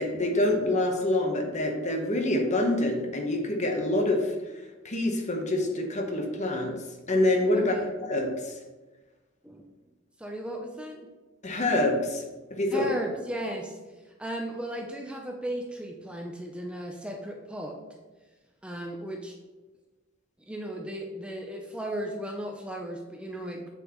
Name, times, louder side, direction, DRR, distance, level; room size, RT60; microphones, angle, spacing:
voice 1, 0.0-4.4 4.8-6.8 7.1-8.5 11.4-12.2 12.5-12.9, left 1 dB, 35° left, 3 dB, 1.0 m, -26 dB
voice 2, 7.5-7.8 9.4-9.6 10.2-11.1 12.7-17.8 18.6-19.4 20.5-23.7, right 1 dB, 5° right, 1 dB, 0.6 m, -36 dB
7.3 x 6.8 x 3.1 m, 1.2 s
head